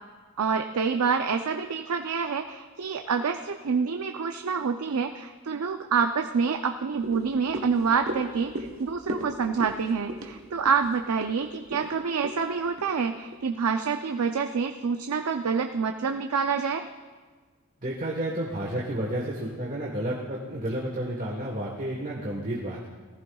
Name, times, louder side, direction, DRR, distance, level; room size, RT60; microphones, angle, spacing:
voice 1, 0.4-8.5 8.8-16.8, right 5 dB, 85° right, 6 dB, 0.5 m, -27 dB
sound 1, 7.0-13.5 13.9-14.0, right 1 dB, 70° right, 1.1 m, -38 dB
voice 2, 17.8-22.9, right 1 dB, 35° right, -3 dB, 1.3 m, -31 dB
18.5 x 14.5 x 2.3 m, 1.4 s
head